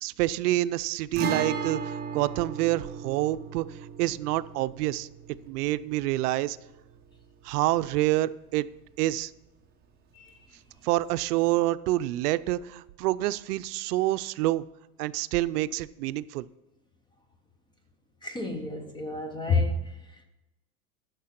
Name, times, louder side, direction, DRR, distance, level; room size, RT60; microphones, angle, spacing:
voice 1, 0.0-3.6 4.0-5.1 5.5-6.6 7.4-8.7 9.0-9.3 10.8-14.6 15.0-16.5, right 16 dB, 80° right, 16 dB, 0.6 m, -27 dB
Guitar, 1.2-8.8 9.0-9.1 11.2-11.3, right 5 dB, 20° right, 1.0 m, -37 dB
voice 2, 18.2-19.9, left 3 dB, 10° left, 6 dB, 0.4 m, -29 dB
10.5 x 6.6 x 5.8 m, 1.0 s
supercardioid pair, 155°, 45 cm